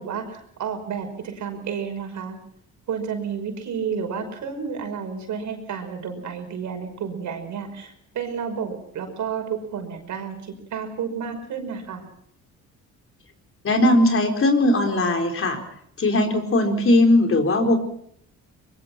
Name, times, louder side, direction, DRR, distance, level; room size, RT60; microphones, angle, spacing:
voice 1, 0.0-2.4 2.9-12.1, right 6 dB, 75° right, 5 dB, 5.7 m, -31 dB
voice 2, 13.6-15.6 16.0-17.8, left 1 dB, 45° left, 4 dB, 4.4 m, -19 dB
23.5 x 22.0 x 6.1 m, 0.69 s
cardioid pair, 90°, 30 cm